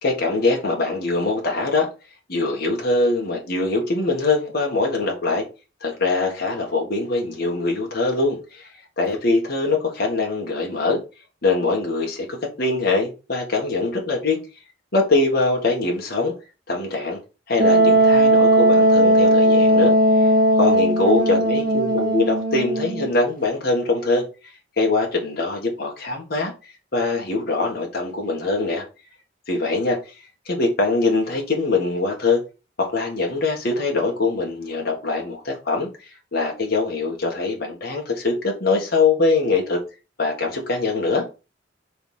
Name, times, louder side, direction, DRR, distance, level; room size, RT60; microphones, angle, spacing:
voice 1, 0.0-1.9 2.3-5.4 5.8-8.7 9.0-11.0 11.4-14.4 14.9-16.3 16.7-17.2 17.5-19.9 20.6-24.2 24.8-26.5 26.9-28.8 29.5-30.0 30.5-32.4 32.8-35.9 36.3-39.8 40.2-41.3, left 3 dB, 55° left, 1.8 m, -22 dB
Wind instrument woodwind instrument, 17.6-23.1, right 1 dB, 50° right, 1.8 m, -17 dB
4.3 x 4.3 x 5.6 m
head